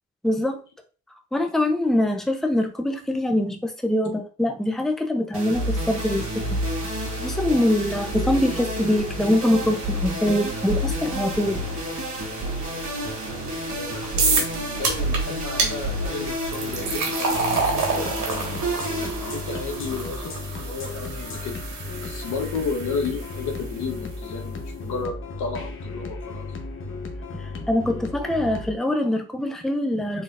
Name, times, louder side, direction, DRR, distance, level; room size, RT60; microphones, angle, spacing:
voice 1, 0.2-0.6 1.3-6.4 7.2-11.6 27.7-30.2, left 1 dB, ahead, 5 dB, 0.6 m, -23 dB
sound 1, 5.3-20.7, right 1 dB, 50° right, 1.9 m, -29 dB
voice 2, 13.7-18.2 19.0-21.6 22.0-26.5, left 4 dB, 80° left, 3 dB, 1.0 m, -33 dB
sound 2, 14.2-14.5 14.8-15.2 15.6-15.7 16.4-23.5, right 4 dB, 75° right, 1.6 m, -28 dB
sound 3, 17.4-28.8, left 3 dB, 45° left, 0.9 m, -35 dB
4.1 x 3.8 x 2.5 m, 0.35 s
cardioid pair, 90°, 30 cm